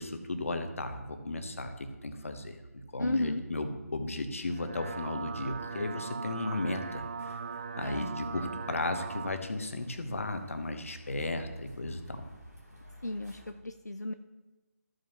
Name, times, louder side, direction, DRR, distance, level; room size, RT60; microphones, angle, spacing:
voice 1, 0.0-2.6 2.9-12.2, left 2 dB, 55° left, 7 dB, 1.2 m, -35 dB
voice 2, 3.0-3.4 7.8-8.1 13.0-14.1, left 2 dB, 85° left, 7 dB, 0.6 m, -33 dB
sound 1, 4.4-9.4, right 5 dB, 35° right, 0.3 m, -39 dB
sound 2, 6.8-13.5, left 1 dB, 85° right, 2.9 m, -57 dB
14.0 x 7.7 x 3.0 m, 1.1 s
figure-of-eight pair, 150°, 9 cm